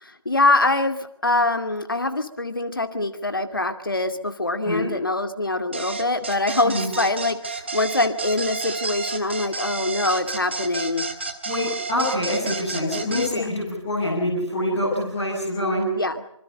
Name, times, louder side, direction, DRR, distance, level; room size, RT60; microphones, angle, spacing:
voice 1, 0.0-11.1 13.3-13.5 15.9-16.2, left 2 dB, 40° left, 8 dB, 2.4 m, -24 dB
sound 1, 5.7-13.3, right 4 dB, 20° right, 1.6 m, -31 dB
voice 2, 11.5-15.9, left 1 dB, ahead, -8 dB, 0.9 m, -25 dB
26.5 x 25.5 x 5.5 m, 0.79 s
figure-of-eight pair, 170°, 17 cm